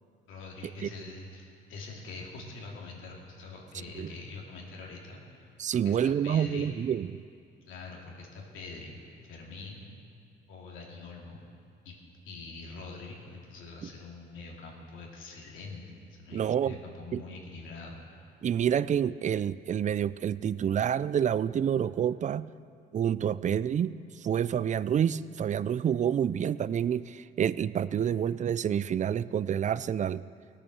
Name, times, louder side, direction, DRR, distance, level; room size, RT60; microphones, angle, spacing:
voice 1, 0.3-5.5 5.8-6.7 7.7-9.0 9.3-9.9 10.5-11.4 11.8-11.9 12.2-15.9 16.2-18.0, left 3 dB, 85° left, -2 dB, 2.5 m, -44 dB
voice 2, 5.6-7.1 13.8-13.9 16.3-16.8 17.1-17.2 18.4-22.5 22.9-30.2, right 9 dB, 40° right, 18 dB, 0.4 m, -28 dB
16.5 x 8.8 x 6.5 m, 2.4 s
cardioid pair, 90°, 20 cm